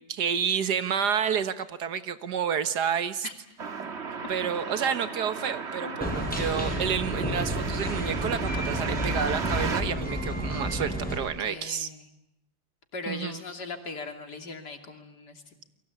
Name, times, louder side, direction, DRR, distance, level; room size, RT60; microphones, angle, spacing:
voice 1, 0.1-3.3 4.3-11.9 13.1-13.4, right 7 dB, 80° right, 12 dB, 1.9 m, -29 dB
sound 1, 3.6-9.8, right 5 dB, 45° right, 1.7 m, -34 dB
sound 2, 6.0-11.2, equal, 5° left, 6.7 m, -31 dB
voice 2, 10.9-12.1 12.9-15.6, left 3 dB, 85° left, 5 dB, 3.4 m, -39 dB
29.5 x 23.0 x 8.4 m, 0.76 s
omnidirectional pair, 1.7 m